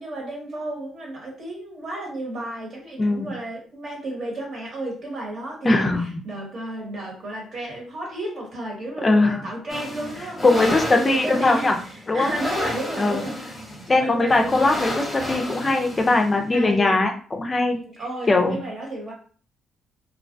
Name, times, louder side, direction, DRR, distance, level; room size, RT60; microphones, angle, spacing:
voice 1, 0.0-13.4 14.0-14.6 16.5-17.0 17.7-19.1, right 1 dB, 55° right, -2 dB, 1.2 m, -33 dB
voice 2, 3.0-3.3 5.6-6.2 9.0-9.4 10.4-11.8 12.1-12.3 13.0-13.2 13.9-17.8 18.3-18.6, left 2 dB, 30° left, 4 dB, 0.4 m, -20 dB
sound 1, 9.7-16.5, left 1 dB, 10° left, 0.8 m, -32 dB
2.3 x 2.1 x 2.5 m, 0.42 s
cardioid pair, 90°, 0 cm